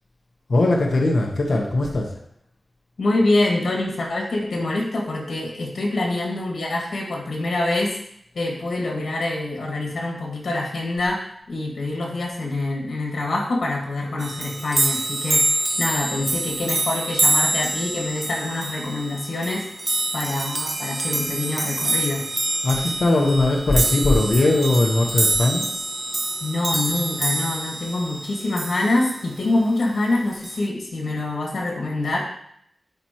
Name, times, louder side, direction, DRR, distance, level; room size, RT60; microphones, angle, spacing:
voice 1, 0.5-2.1 22.6-25.7, left 2 dB, 65° left, 0 dB, 1.0 m, -19 dB
voice 2, 3.0-8.0 8.3-22.2 26.4-32.2, left 2 dB, 80° left, -1 dB, 2.0 m, -25 dB
sound 1, 14.2-29.2 30.4-30.7, right 2 dB, 35° right, 0.7 m, -26 dB
10.5 x 4.4 x 3.0 m, 0.71 s
wide cardioid pair, 100°, 0 cm